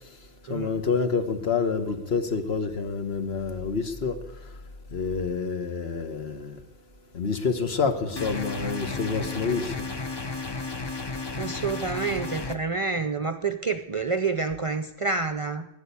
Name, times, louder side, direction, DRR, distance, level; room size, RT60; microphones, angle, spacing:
voice 1, 0.5-4.2 4.9-6.6 7.1-9.9, left 5 dB, 65° left, 1.5 m, -28 dB
sound 1, 8.2-12.6, left 3 dB, 25° left, 0.8 m, -33 dB
voice 2, 11.4-15.7, right 4 dB, 40° right, 0.5 m, -28 dB
12.5 x 10.5 x 8.4 m
omnidirectional pair, 1.1 m